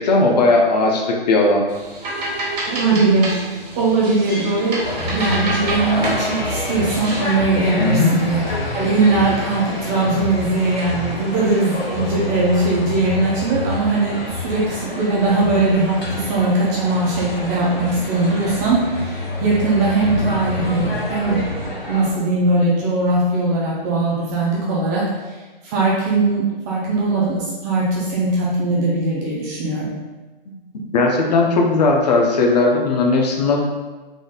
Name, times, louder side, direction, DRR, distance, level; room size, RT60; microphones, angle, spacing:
voice 1, 0.0-1.6 7.8-8.1 30.7-33.6, left 3 dB, 45° left, 0 dB, 0.7 m, -17 dB
sound 1, 1.7-7.4, right 2 dB, 45° right, 1.4 m, -28 dB
voice 2, 2.7-3.5 3.8-4.8 5.1-21.4 21.9-25.1 25.6-29.9, right 2 dB, 20° right, -5 dB, 0.5 m, -20 dB
sound 2, 4.8-22.1, left 2 dB, 85° left, 1.4 m, -27 dB
3.7 x 3.6 x 2.3 m, 1.2 s
figure-of-eight pair, 130°, 29 cm